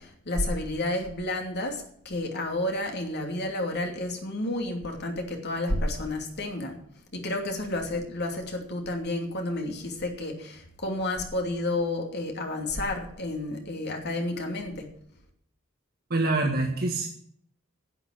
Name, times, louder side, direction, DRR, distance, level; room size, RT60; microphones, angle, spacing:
voice 1, 0.0-6.8 7.1-14.9, left 1 dB, 55° left, 2 dB, 2.9 m, -31 dB
voice 2, 16.1-17.1, right 2 dB, 50° right, 1 dB, 1.7 m, -25 dB
11.0 x 8.0 x 9.0 m, 0.65 s
head